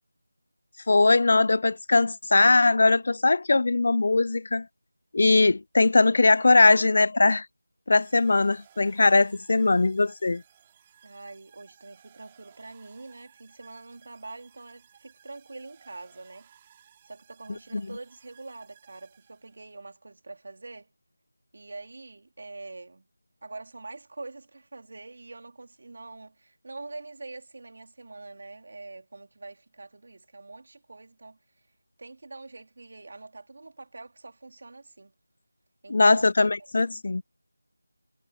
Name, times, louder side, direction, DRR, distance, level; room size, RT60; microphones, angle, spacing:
voice 1, 0.9-4.7 5.1-7.5 7.9-10.4 17.7-17.8 35.9-37.2, left 3 dB, 45° left, 0.4 m, -20 dB
sound 1, 8.0-19.8, right 9 dB, 15° right, 4.0 m, -59 dB
voice 2, 11.0-16.5 17.0-20.9 21.5-23.1 23.4-31.4 32.0-35.1 35.8-36.2 36.6-36.7, right 3 dB, 50° right, 3.5 m, -44 dB
figure-of-eight pair, 170°, 0 cm